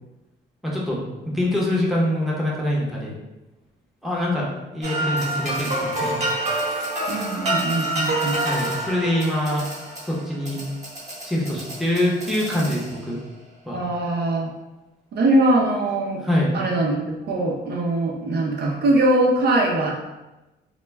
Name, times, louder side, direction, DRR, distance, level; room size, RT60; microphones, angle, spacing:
voice 1, 0.6-3.2 4.0-4.5 4.7-6.3 8.4-9.6 10.0-10.6 11.2-13.2 13.6-13.8 16.2-16.5, left 1 dB, ahead, -4 dB, 0.7 m, -24 dB
sound 1, 4.8-13.2, right 1 dB, 35° right, 0.9 m, -28 dB
voice 2, 7.1-8.4 13.7-14.5 15.1-16.2 16.5-17.0 17.3-19.9, right 1 dB, 55° right, -2 dB, 0.5 m, -21 dB
2.2 x 2.1 x 3.3 m, 1.0 s
cardioid pair, 90°, 20 cm